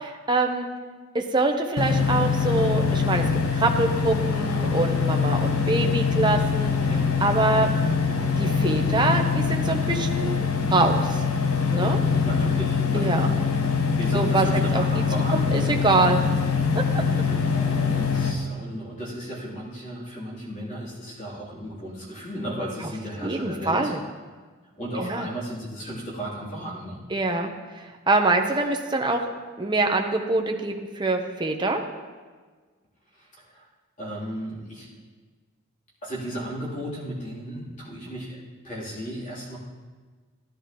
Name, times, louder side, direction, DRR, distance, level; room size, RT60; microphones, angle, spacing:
voice 1, 0.1-0.7 1.1-6.7 7.2-7.7 8.4-11.2 11.7-12.0 12.9-13.3 14.1-14.5 14.7-14.8 15.3-16.2 16.9-17.0 23.2-24.0 25.0-25.3 27.1-29.2 29.6-31.8, right 2 dB, 20° right, 3 dB, 0.8 m, -24 dB
sound 1, 1.8-18.3, left 5 dB, 80° left, 1.1 m, -23 dB
voice 2, 12.2-13.4 14.0-15.5 17.3-23.9 24.8-27.0 33.2-33.6 34.0-34.9 36.0-39.6, equal, 35° left, -6 dB, 3.3 m, -35 dB
15.5 x 10.5 x 3.1 m, 1.4 s
head